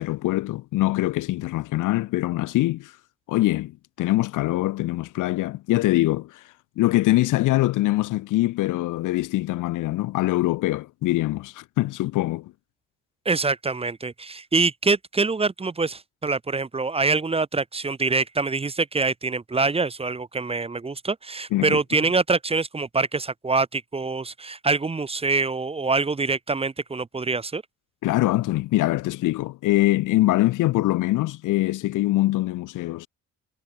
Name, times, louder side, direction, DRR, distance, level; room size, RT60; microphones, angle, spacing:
voice 1, 0.0-2.9 3.3-6.4 6.8-12.5 21.5-21.8 28.0-33.1, left 17 dB, 85° left, 1.1 m, -23 dB
voice 2, 13.2-27.6, right 3 dB, 20° right, 0.9 m, -25 dB
cardioid pair, 100°, 30 cm